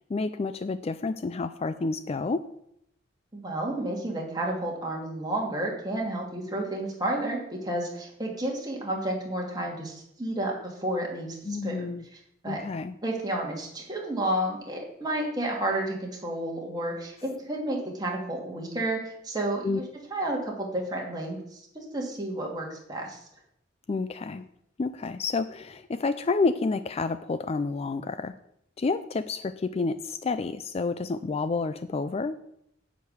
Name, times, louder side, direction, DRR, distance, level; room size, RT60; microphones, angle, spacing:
voice 1, 0.1-2.5 11.4-12.0 12.5-12.9 19.6-19.8 23.9-24.5 24.8-28.3 28.8-32.4, left 3 dB, 30° left, 12 dB, 0.4 m, -29 dB
voice 2, 3.3-11.4 11.6-11.9 12.4-12.6 13.0-19.8 20.1-23.2, right 1 dB, 20° right, -1 dB, 2.5 m, -31 dB
10.0 x 5.1 x 8.1 m, 0.76 s
head